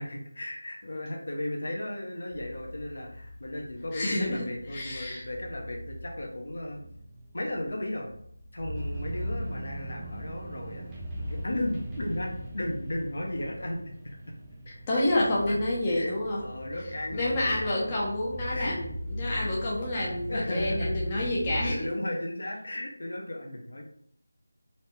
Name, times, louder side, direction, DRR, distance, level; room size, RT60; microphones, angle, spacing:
voice 1, 0.0-6.8 7.3-8.1 8.5-10.9 11.2-13.8 14.0-14.3 14.9-15.0 15.5-15.6 15.9-16.1 16.4-18.0 18.5-18.7 19.2-19.5 20.3-21.0 21.6-23.8, left 1 dB, 60° left, 1 dB, 1.0 m, -35 dB
sound 1, 2.3-21.7, equal, 10° right, 0.7 m, -39 dB
voice 2, 3.9-5.2 14.7-16.4 17.1-21.9, left 1 dB, 20° left, -5 dB, 0.8 m, -29 dB
4.2 x 3.5 x 3.3 m, 0.66 s
figure-of-eight pair, 165°, 0 cm